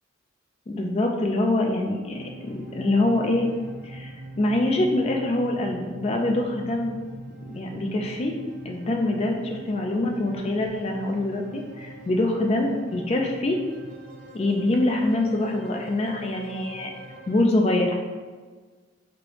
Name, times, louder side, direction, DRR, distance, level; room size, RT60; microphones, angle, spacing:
voice 1, 0.7-3.5 3.8-7.0 7.5-8.3 8.6-13.6 14.3-16.9 17.3-17.9, left 2 dB, 30° left, 2 dB, 0.3 m, -24 dB
sound 1, 2.1-17.4, right 1 dB, 40° right, 0.4 m, -43 dB
3.3 x 2.6 x 3.0 m, 1.5 s
head